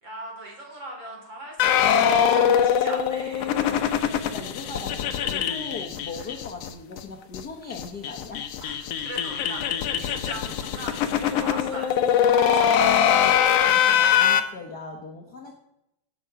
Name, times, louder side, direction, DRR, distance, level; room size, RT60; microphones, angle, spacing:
voice 1, 0.0-3.6 8.6-12.9, right 1 dB, 40° right, 0 dB, 4.2 m, -40 dB
sound 1, 1.6-6.7 7.0-7.1 7.3-7.4 7.7-14.4, left 8 dB, 65° left, 1.7 m, -22 dB
voice 2, 4.3-8.4 13.7-15.6, left 4 dB, 45° left, 0 dB, 1.4 m, -39 dB
17.0 x 7.9 x 5.0 m, 0.81 s
omnidirectional pair, 3.5 m